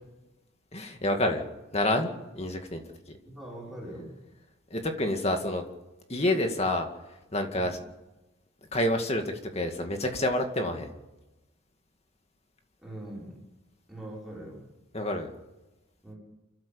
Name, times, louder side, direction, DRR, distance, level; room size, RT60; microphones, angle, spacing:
voice 1, 0.7-2.8 4.7-5.7 6.1-6.9 7.3-7.8 8.7-10.9 14.9-15.3, left 1 dB, 30° left, 5 dB, 2.1 m, -28 dB
voice 2, 3.2-4.1 7.5-7.8 12.8-13.3 13.9-14.6 16.0-16.1, right 1 dB, ahead, -5 dB, 5.8 m, -42 dB
28.5 x 13.0 x 7.1 m, 1.0 s
head